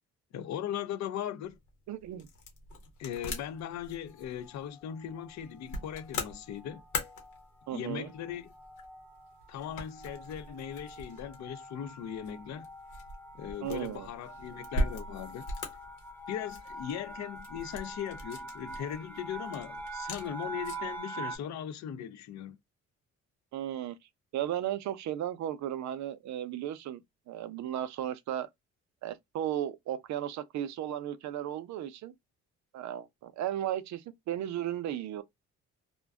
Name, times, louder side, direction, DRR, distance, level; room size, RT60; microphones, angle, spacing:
voice 1, 0.3-1.6 3.0-6.8 7.7-8.5 9.5-12.7 13.3-15.5 16.3-22.6, left 9 dB, 65° left, 0.5 m, -39 dB
sound 1, 1.4-21.0, left 1 dB, 85° left, 1.0 m, -42 dB
voice 2, 1.9-2.3 7.7-8.1 13.6-14.1 23.5-24.0 24.3-28.5 29.0-32.1 32.7-35.2, right 11 dB, 65° right, 0.5 m, -35 dB
sound 2, 3.2-3.7 4.5-4.8 5.1-5.3 5.6-21.4, right 1 dB, 5° left, 0.7 m, -45 dB
2.4 x 2.2 x 2.3 m
cardioid pair, 90°, 30 cm